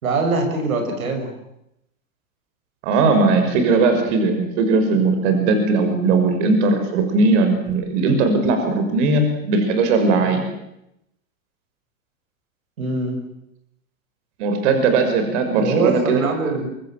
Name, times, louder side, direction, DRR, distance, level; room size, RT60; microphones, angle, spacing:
voice 1, 0.0-1.3 12.8-13.2 15.6-16.7, right 3 dB, 85° right, 4 dB, 6.5 m, -23 dB
voice 2, 2.8-10.5 14.4-16.2, right 3 dB, 60° right, 6 dB, 5.8 m, -18 dB
24.5 x 23.5 x 7.6 m, 0.81 s
hypercardioid pair, 115°, 41 cm